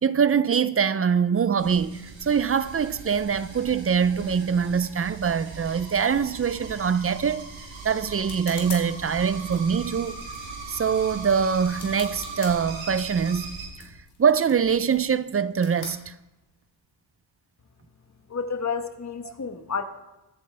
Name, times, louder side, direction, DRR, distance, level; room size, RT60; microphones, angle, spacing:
voice 1, 0.0-7.4 7.8-10.2 10.7-13.5 14.2-16.1 19.2-19.3, right 6 dB, 30° right, 0.5 m, -23 dB
sound 1, 1.6-13.7, right 3 dB, 75° right, 4.2 m, -40 dB
sound 2, 7.6-16.8, left 4 dB, 60° left, 3.4 m, -46 dB
voice 2, 18.3-19.8, left 5 dB, 35° left, 1.2 m, -30 dB
23.0 x 8.7 x 3.4 m
cardioid pair, 95°, 46 cm